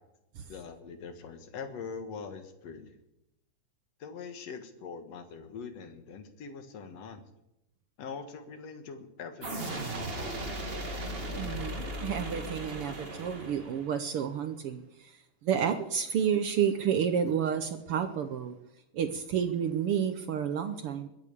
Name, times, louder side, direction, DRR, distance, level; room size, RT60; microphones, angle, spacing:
voice 1, 0.5-3.0 4.0-7.3 8.0-10.6, left 5 dB, 60° left, 8 dB, 2.5 m, -43 dB
sound 1, 9.4-14.1, right 1 dB, 20° right, 1.8 m, -37 dB
voice 2, 11.4-18.5 18.9-21.1, right 8 dB, 70° right, 9 dB, 1.4 m, -30 dB
22.0 x 8.8 x 6.8 m, 0.87 s
omnidirectional pair, 3.5 m